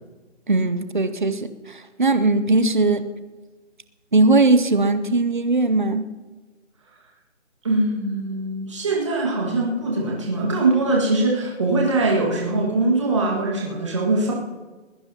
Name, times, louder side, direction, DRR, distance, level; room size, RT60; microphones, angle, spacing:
voice 1, 0.5-3.0 4.1-6.1, right 3 dB, 40° right, 11 dB, 0.9 m, -19 dB
voice 2, 7.6-14.3, right 2 dB, 25° right, -3 dB, 1.9 m, -22 dB
20.5 x 16.0 x 2.9 m, 1.2 s
hypercardioid pair, 180°, 37 cm